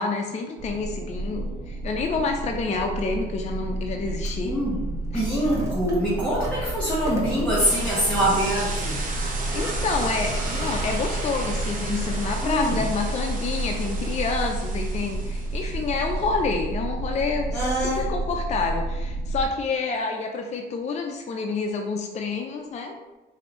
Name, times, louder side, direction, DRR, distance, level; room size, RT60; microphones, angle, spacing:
voice 1, 0.0-4.6 5.1-5.2 9.5-23.0, left 4 dB, 35° left, 3 dB, 0.4 m, -28 dB
sound 1, 0.6-19.5, right 2 dB, 70° right, 0.7 m, -30 dB
voice 2, 4.4-9.0 12.4-12.8 17.5-18.1, equal, 5° left, -9 dB, 1.2 m, -24 dB
Vehicle, 5.3-14.7, right 1 dB, 15° right, 1.1 m, -39 dB
sound 2, 7.6-15.8, right 2 dB, 40° right, 1.0 m, -35 dB
4.8 x 2.6 x 3.0 m, 1.2 s
cardioid pair, 90°, 20 cm